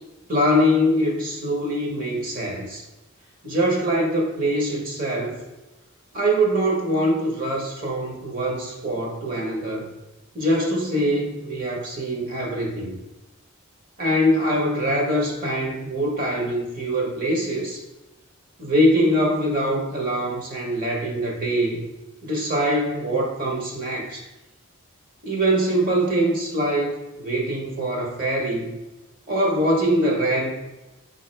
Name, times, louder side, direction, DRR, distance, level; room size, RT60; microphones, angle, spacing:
voice 1, 0.3-2.8 3.4-5.4 6.1-9.9 10.3-13.0 14.0-17.8 18.6-21.8 22.2-24.3 25.2-28.8 29.3-30.5, equal, 40° right, 0 dB, 0.9 m, -23 dB
4.1 x 3.4 x 3.2 m, 1.0 s
head